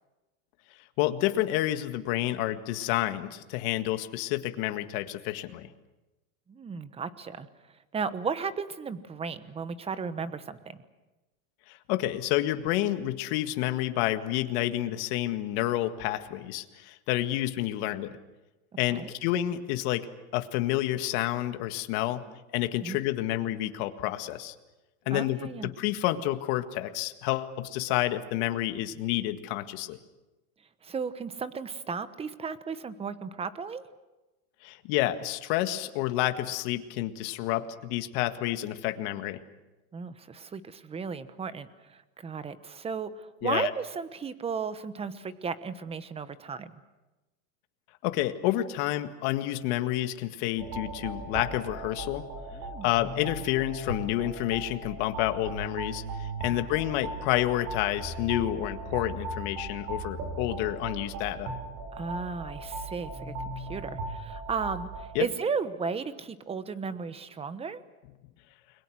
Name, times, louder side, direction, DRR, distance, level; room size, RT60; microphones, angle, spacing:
voice 1, 1.0-5.7 11.7-18.2 18.8-20.1 20.3-22.2 22.5-24.5 25.1-30.0 34.6-39.4 43.4-43.7 48.0-52.2 52.8-61.5 65.2-65.3, left 14 dB, 50° left, 8 dB, 1.9 m, -29 dB
voice 2, 6.5-7.5 7.9-10.8 18.9-19.1 22.3-22.4 22.8-23.0 25.1-25.7 30.8-33.8 39.9-46.8 52.5-52.9 56.5-56.7 61.9-67.8, right 5 dB, 15° right, 13 dB, 1.1 m, -35 dB
sound 1, 50.6-65.0, right 2 dB, 50° right, 7.1 m, -38 dB
29.5 x 22.0 x 6.4 m, 1.1 s
supercardioid pair, 140°, 42 cm